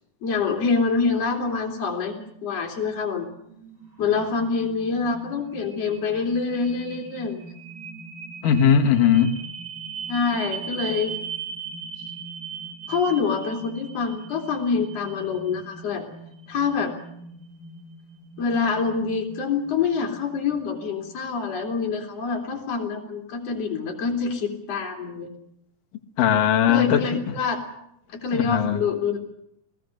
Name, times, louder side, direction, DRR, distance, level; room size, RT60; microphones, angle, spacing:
voice 1, 0.2-3.3 4.0-7.4 10.1-11.1 12.9-16.0 16.5-16.9 18.4-25.3 26.7-27.6 28.1-29.2, left 5 dB, 50° left, 3.8 m, -26 dB
sound 1, 3.1-21.2, right 6 dB, 30° right, 7.7 m, -39 dB
voice 2, 8.4-9.3 26.2-27.2 28.3-28.8, left 8 dB, 70° left, 2.9 m, -19 dB
29.5 x 18.5 x 6.6 m
omnidirectional pair, 4.0 m